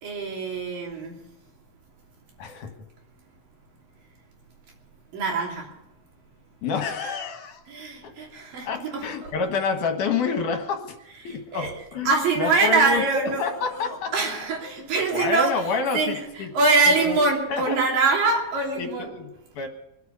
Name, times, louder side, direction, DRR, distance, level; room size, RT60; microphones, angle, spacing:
voice 1, 0.0-1.1 5.1-5.7 7.7-9.3 11.2-11.7 12.1-15.7 15.9-19.1, right 3 dB, 90° right, 4.7 m, -24 dB
voice 2, 2.4-2.7 6.6-7.6 8.0-8.1 8.6-11.0 11.2-14.1 14.8-16.5 16.9-17.2 17.5-17.9 18.8-19.7, left 5 dB, 70° left, 3.0 m, -28 dB
24.0 x 8.2 x 6.9 m
omnidirectional pair, 3.8 m